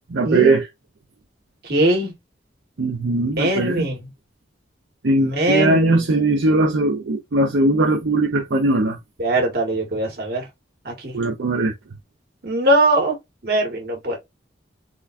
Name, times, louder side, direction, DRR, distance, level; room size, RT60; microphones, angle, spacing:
voice 1, 0.1-0.6 2.8-3.8 5.0-9.0 11.1-11.7, right 2 dB, 80° right, 0.6 m, -19 dB
voice 2, 1.6-2.1 3.4-4.1 5.2-6.1 9.2-10.5 10.8-11.2 12.4-13.2 13.4-14.2, right 1 dB, 55° right, 1.5 m, -21 dB
3.7 x 2.3 x 2.5 m
head